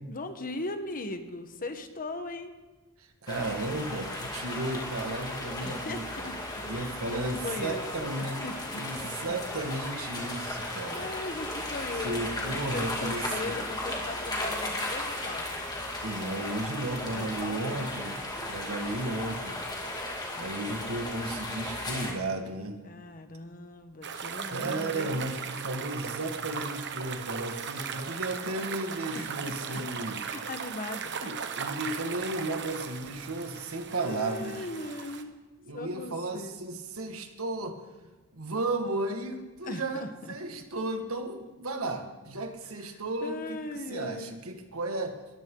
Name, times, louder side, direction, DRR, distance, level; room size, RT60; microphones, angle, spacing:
voice 1, 0.1-2.5 5.6-6.3 6.7-8.8 9.3-9.4 10.9-15.5 17.1-17.8 22.8-25.2 29.1-29.8 30.2-31.3 33.5-35.3 35.7-36.6 39.6-40.3 43.2-44.3, left 2 dB, 40° left, 8 dB, 1.2 m, -39 dB
voice 2, 3.0-6.3 6.6-8.4 8.8-11.1 12.0-13.6 16.0-18.2 18.5-19.6 20.4-22.8 24.4-30.2 31.2-34.7 35.6-37.8 38.3-43.6 43.9-45.2, right 2 dB, 70° right, 5 dB, 1.9 m, -34 dB
sound 1, 3.3-22.1, left 1 dB, 20° left, 2.5 m, -35 dB
sound 2, 24.0-35.2, right 6 dB, 55° right, 1.2 m, -37 dB
21.0 x 14.5 x 3.9 m, 1.2 s
head